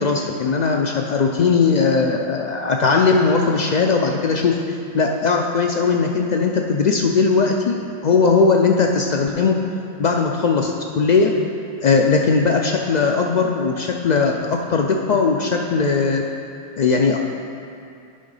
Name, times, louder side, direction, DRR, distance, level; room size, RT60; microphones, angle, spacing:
voice 1, 0.0-9.6 10.0-11.3 11.8-16.2 16.8-17.2, left 4 dB, 70° left, 1 dB, 0.4 m, -19 dB
9.8 x 3.9 x 5.4 m, 2.5 s
omnidirectional pair, 1.2 m